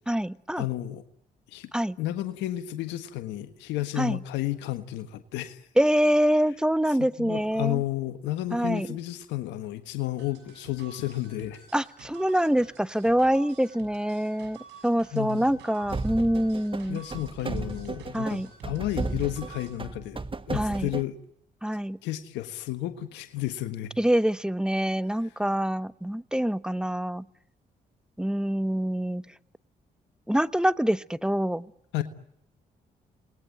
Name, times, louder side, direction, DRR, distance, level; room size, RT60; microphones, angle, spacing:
voice 1, 0.1-0.7 1.7-2.0 4.0-4.2 5.8-7.8 8.5-8.9 11.7-17.0 18.1-18.5 20.5-20.9 21.6-22.0 24.0-27.3 28.2-29.2 30.3-31.7, equal, 5° right, 1.1 m, -25 dB
voice 2, 0.6-1.0 1.5-1.7 2.0-5.6 7.2-11.6 15.1-15.5 16.9-21.1 22.0-23.9 31.9-32.0, left 14 dB, 85° left, 1.5 m, -32 dB
sound 1, 10.2-19.8, right 7 dB, 85° right, 6.5 m, -51 dB
sound 2, 15.8-21.0, right 3 dB, 30° right, 1.7 m, -34 dB
28.5 x 20.5 x 9.2 m
supercardioid pair, 55°, 18 cm